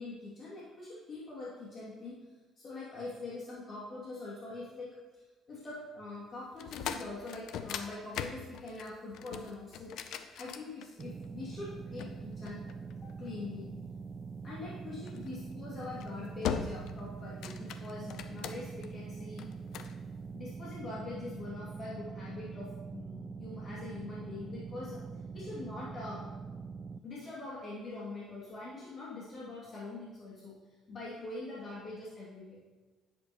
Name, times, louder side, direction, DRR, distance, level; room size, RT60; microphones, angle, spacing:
voice 1, 0.0-2.2 2.6-9.9 10.4-12.6 13.0-13.7 14.4-19.5 20.3-25.0 25.3-26.3 27.0-30.6 30.9-32.6, left 2 dB, 45° left, -6 dB, 2.4 m, -43 dB
sound 1, 6.5-11.3 12.0-13.3 15.1-15.3 15.8-16.1 16.4-17.0 17.3-18.9 19.4-20.0, left 8 dB, 60° left, 0.6 m, -40 dB
sound 2, 11.0-27.0, right 5 dB, 40° right, 0.4 m, -44 dB
10.5 x 9.8 x 3.0 m, 1.3 s
figure-of-eight pair, 50°, 0 cm